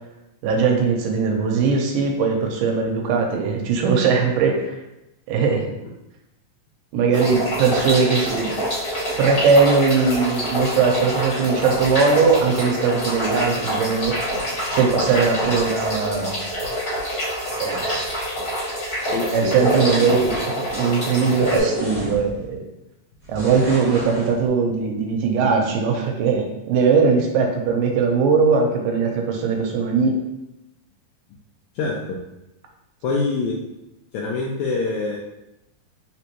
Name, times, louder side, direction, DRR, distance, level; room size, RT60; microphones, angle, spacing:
voice 1, 0.4-4.8 5.3-5.7 6.9-8.5 9.2-14.2 14.7-16.4 17.6-18.1 19.3-22.6 23.3-30.2, right 5 dB, 85° right, 2 dB, 2.3 m, -20 dB
sound 1, 7.1-21.6, equal, 35° left, 1.5 m, -26 dB
voice 2, 19.1-19.5 31.7-32.2 33.0-33.6 34.1-35.2, left 3 dB, 85° left, -2 dB, 1.6 m, -25 dB
sound 2, 19.5-20.4 21.3-22.4 23.3-24.3, right 1 dB, 35° right, 0.8 m, -27 dB
5.1 x 3.4 x 2.9 m, 0.90 s
omnidirectional pair, 3.9 m